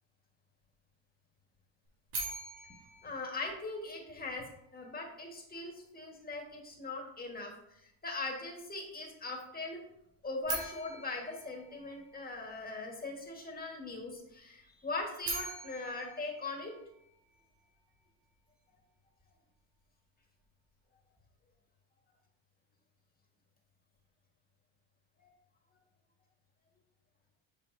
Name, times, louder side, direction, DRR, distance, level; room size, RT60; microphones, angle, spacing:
sound 1, 2.1-4.2 10.4-12.6 15.0-17.4, right 3 dB, 80° right, 2.5 m, -43 dB
voice 1, 3.0-4.5 4.7-9.8 10.2-16.7 25.2-25.3, left 3 dB, 20° left, 1 dB, 1.6 m, -40 dB
7.4 x 5.1 x 2.7 m, 0.81 s
cardioid pair, 105°, 49 cm